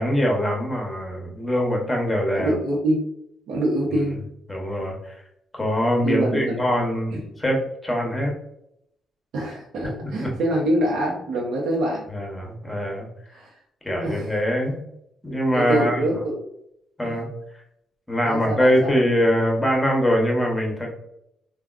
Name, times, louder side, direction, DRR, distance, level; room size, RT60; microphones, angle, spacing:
voice 1, 0.0-2.5 3.9-4.1 4.5-5.2 5.5-8.3 10.0-10.3 12.1-13.1 13.8-14.8 15.2-16.0 17.0-17.3 18.1-20.9, equal, 10° left, 0 dB, 1.0 m, -23 dB
voice 2, 2.3-3.0 3.5-4.2 6.0-6.6 7.1-7.2 9.3-12.1 13.3-13.5 14.0-14.3 15.5-16.4 17.0-17.2 18.2-18.9, right 1 dB, 75° right, -4 dB, 0.7 m, -25 dB
3.4 x 2.3 x 2.4 m, 0.78 s
cardioid pair, 90°, 0 cm